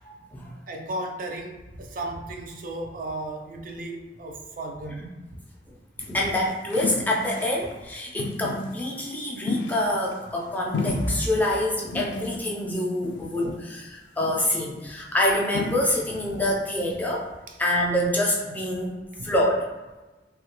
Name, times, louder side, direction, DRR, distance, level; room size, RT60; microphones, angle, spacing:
voice 1, 0.0-0.5 6.1-17.3 17.6-19.7, left 1 dB, 10° left, -3 dB, 0.4 m, -26 dB
voice 2, 0.7-5.2 6.1-6.2 16.3-16.4 17.5-17.6 19.1-19.3, right 2 dB, 50° right, 2 dB, 0.4 m, -35 dB
sound 1, 6.0-7.7 8.2-8.8 9.5-10.5 10.7-11.5 11.9-12.5 13.0-13.5 14.2-14.6 15.5-16.2 16.4-16.6, left 3 dB, 85° left, 0.3 m, -33 dB
3.2 x 2.3 x 2.9 m, 1.2 s
head